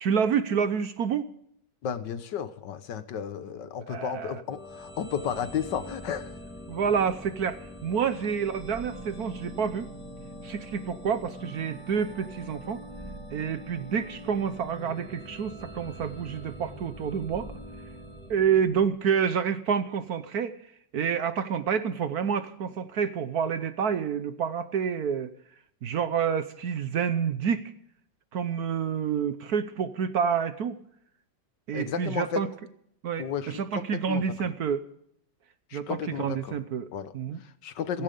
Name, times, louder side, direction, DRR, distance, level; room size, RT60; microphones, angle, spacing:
voice 1, 0.0-1.3 3.9-4.4 6.7-9.9 10.4-12.8 13.3-17.5 18.3-20.5 20.9-25.3 25.8-27.7 28.3-30.8 31.7-32.5 33.0-34.8 35.7-36.9 37.1-37.4, right 7 dB, 60° right, 12 dB, 1.2 m, -28 dB
voice 2, 1.8-6.4 31.7-32.4 33.2-34.5 35.7-36.6 36.9-37.1 37.4-38.0, left 8 dB, 65° left, 12 dB, 1.6 m, -33 dB
sound 1, 4.5-19.2, equal, 5° left, 2.2 m, -43 dB
16.0 x 15.5 x 5.2 m, 0.67 s
omnidirectional pair, 2.1 m